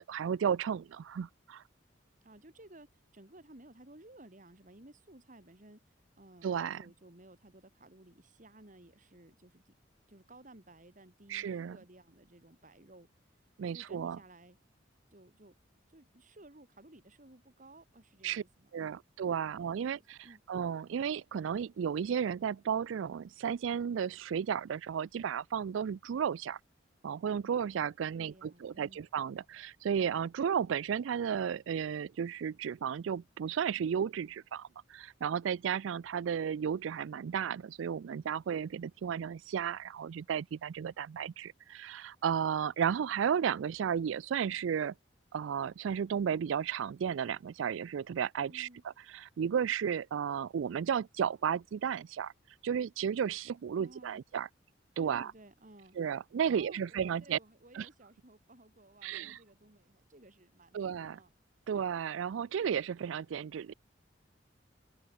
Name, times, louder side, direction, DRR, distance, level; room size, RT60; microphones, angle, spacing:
voice 1, 0.0-1.6 6.4-6.8 11.3-11.8 13.6-14.2 18.2-18.4 18.7-20.2 20.5-26.6 27.0-44.9 45.3-48.7 49.1-52.3 52.6-54.5 55.0-55.3 56.0-57.4 57.7-57.9 59.0-59.4 60.7-61.2 61.7-63.7, right 7 dB, 85° right, 0.4 m, -33 dB
voice 2, 2.2-9.7 10.1-13.1 13.7-14.6 15.1-15.5 15.9-19.0 19.4-19.6 20.2-20.4 28.1-29.0 48.5-48.8 53.8-54.2 55.0-56.0 56.5-61.3, right 1 dB, 40° right, 2.6 m, -57 dB
open air
head